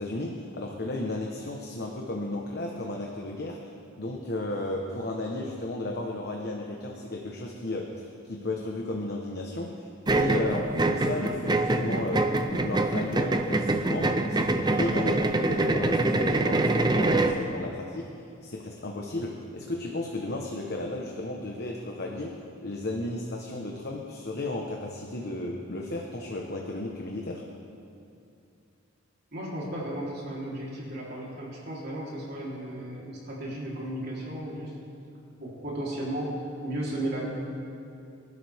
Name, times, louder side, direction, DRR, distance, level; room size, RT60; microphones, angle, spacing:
voice 1, 0.0-3.6 4.0-9.9 10.2-27.5, left 2 dB, 55° left, 0 dB, 1.2 m, -34 dB
sound 1, 10.1-17.4, right 2 dB, 20° right, 0.6 m, -25 dB
voice 2, 29.3-34.7 35.4-37.3, right 1 dB, 55° right, -5 dB, 3.6 m, -34 dB
24.0 x 12.5 x 3.6 m, 2.7 s
head